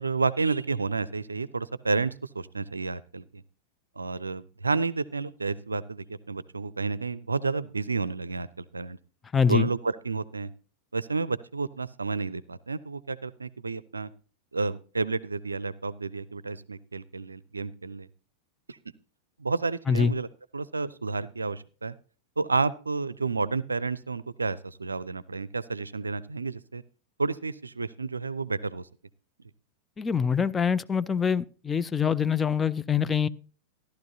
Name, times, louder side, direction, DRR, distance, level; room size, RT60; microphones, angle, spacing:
voice 1, 0.0-3.4 4.0-9.0 9.5-10.5 10.9-14.1 14.5-18.1 18.7-18.8 19.4-20.3 20.5-21.9 22.4-26.8 27.2-28.9, right 4 dB, 80° right, 0.4 m, -30 dB
voice 2, 9.3-9.7 19.9-20.1 30.0-33.3, left 6 dB, 15° left, 0.4 m, -24 dB
14.5 x 11.5 x 2.7 m
figure-of-eight pair, 90°, 0 cm